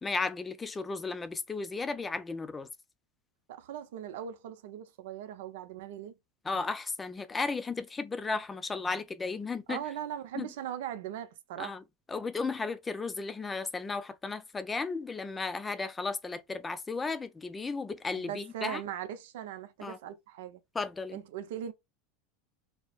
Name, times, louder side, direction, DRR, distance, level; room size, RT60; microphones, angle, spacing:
voice 1, 0.0-2.7 6.4-9.8 10.4-10.5 11.6-11.8 12.1-18.8 19.8-20.0 20.7-21.2, left 4 dB, 15° left, 0.4 m, -34 dB
voice 2, 3.5-6.1 9.7-11.8 18.1-20.6 21.1-21.7, right 10 dB, 75° right, 0.7 m, -39 dB
4.5 x 2.1 x 2.3 m
supercardioid pair, 145°, 0 cm